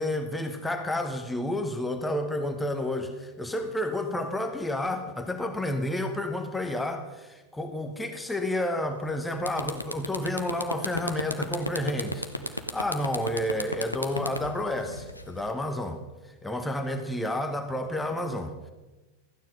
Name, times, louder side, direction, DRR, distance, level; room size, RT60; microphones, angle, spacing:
voice 1, 0.0-16.0 16.4-18.7, left 1 dB, 5° left, 6 dB, 1.1 m, -30 dB
sound 1, 9.0-9.1 9.4-15.5, left 1 dB, 85° left, 0.8 m, -33 dB
13.5 x 9.3 x 5.3 m, 1.2 s
figure-of-eight pair, 90°, 0 cm